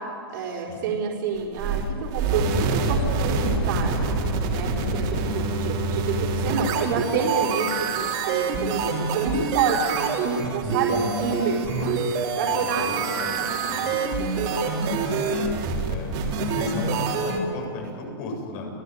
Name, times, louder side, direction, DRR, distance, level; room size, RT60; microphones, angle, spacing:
voice 1, 0.3-4.0 4.5-11.9 12.4-13.6 13.9-14.8, right 5 dB, 50° right, -2 dB, 4.5 m, -29 dB
sound 1, 1.4-17.4, right 4 dB, 35° right, 3.9 m, -26 dB
voice 2, 4.8-5.3 10.7-11.9 12.5-13.3 13.7-13.9 15.9-16.1 16.5-18.7, left 3 dB, 40° left, 2 dB, 7.7 m, -34 dB
28.5 x 18.5 x 9.5 m, 2.8 s
hypercardioid pair, 155°, 13 cm